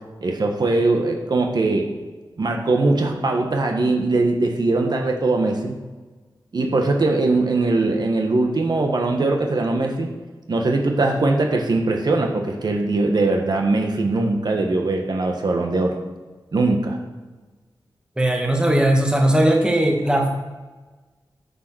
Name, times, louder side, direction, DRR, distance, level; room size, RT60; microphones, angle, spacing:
voice 1, 0.2-1.9 2.4-5.8 6.5-10.1 10.5-16.0 16.5-17.0, right 2 dB, 60° right, 2 dB, 1.4 m, -21 dB
voice 2, 18.2-20.3, right 1 dB, 10° right, 1 dB, 1.7 m, -18 dB
9.5 x 6.5 x 6.2 m, 1.3 s
wide cardioid pair, 90°, 8 cm